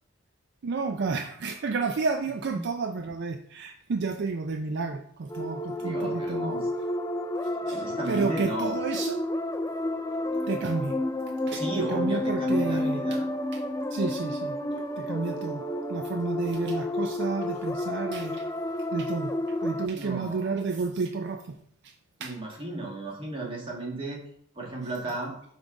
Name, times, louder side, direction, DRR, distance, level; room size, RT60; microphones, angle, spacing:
voice 1, 0.6-6.6 7.7-9.2 10.5-11.0 11.5-13.2 13.9-14.6 15.0-15.6 15.9-18.5 18.9-19.3 19.6-21.4 21.8-21.9 22.2-22.4, right 4 dB, 55° right, 5 dB, 0.4 m, -31 dB
sound 1, 5.3-19.9, left 1 dB, 15° left, 0.3 m, -30 dB
voice 2, 5.8-6.7 7.7-8.8 11.5-13.3 19.9-20.6 22.2-24.2 24.5-25.3, right 2 dB, 25° right, -2 dB, 1.6 m, -35 dB
5.9 x 3.8 x 4.9 m, 0.66 s
head